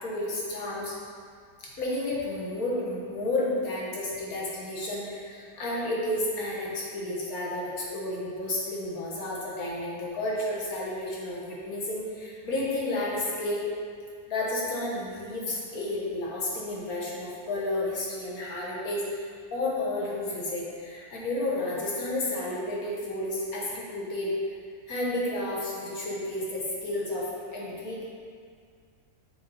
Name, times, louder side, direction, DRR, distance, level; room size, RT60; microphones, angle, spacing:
voice 1, 0.0-0.9 1.8-13.6 14.3-24.3 24.9-28.0, left 1 dB, 80° left, -5 dB, 1.8 m, -31 dB
6.6 x 4.2 x 4.1 m, 2.1 s
omnidirectional pair, 1.5 m